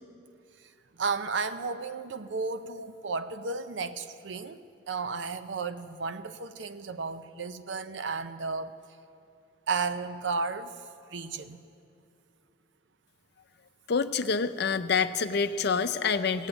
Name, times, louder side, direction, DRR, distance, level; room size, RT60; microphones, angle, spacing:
voice 1, 1.0-4.6 4.9-8.7 9.7-10.7 11.1-11.6, right 4 dB, 80° right, 11 dB, 0.6 m, -33 dB
voice 2, 13.9-16.5, left 5 dB, 60° left, 11 dB, 0.5 m, -27 dB
17.5 x 7.2 x 8.9 m, 2.5 s
head